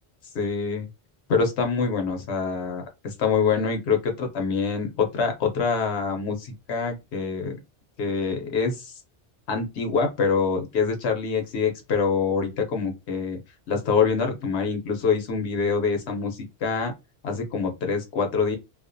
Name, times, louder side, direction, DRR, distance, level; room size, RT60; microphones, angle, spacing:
voice 1, 0.3-0.9 1.3-7.6 8.0-8.9 9.5-13.4 13.7-16.9 17.2-18.6, left 5 dB, 85° left, 3 dB, 1.0 m, -25 dB
2.4 x 2.1 x 2.5 m, 0.25 s
omnidirectional pair, 1.1 m